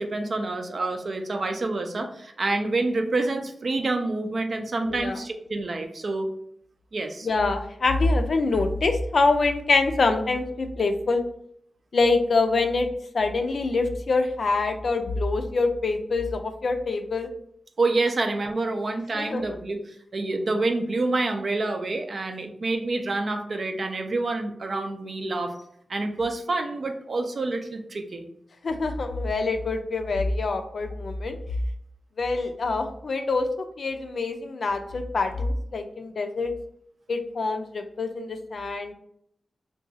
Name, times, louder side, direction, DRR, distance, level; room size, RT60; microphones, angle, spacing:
voice 1, 0.0-6.3 6.9-7.3 17.8-19.8 20.1-25.6 25.9-28.3, right 2 dB, 60° right, 5 dB, 0.5 m, -27 dB
voice 2, 4.8-5.2 7.2-11.2 11.9-12.9 13.1-17.3 19.1-19.4 28.6-31.3 32.2-33.5 33.8-36.5 37.1-38.9, left 3 dB, 65° left, 6 dB, 0.4 m, -25 dB
2.6 x 2.3 x 3.9 m, 0.70 s
cardioid pair, 70°, 0 cm